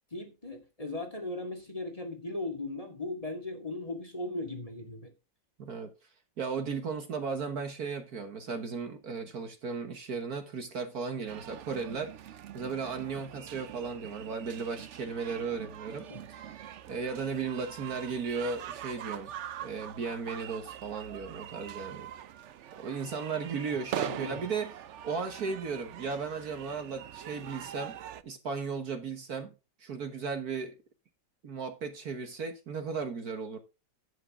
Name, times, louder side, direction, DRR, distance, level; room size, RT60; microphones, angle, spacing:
voice 1, 0.1-5.1 16.1-16.3 24.1-24.4, left 2 dB, 20° left, 2.2 m, -38 dB
voice 2, 5.6-5.9 6.4-19.3 19.6-22.1 22.8-24.7 25.0-28.0 28.2-29.5 29.8-30.8 31.4-33.6, right 5 dB, 55° right, 1.7 m, -36 dB
sound 1, 11.3-28.2, right 10 dB, 85° right, 0.6 m, -43 dB
11.0 x 8.7 x 3.6 m
omnidirectional pair, 2.0 m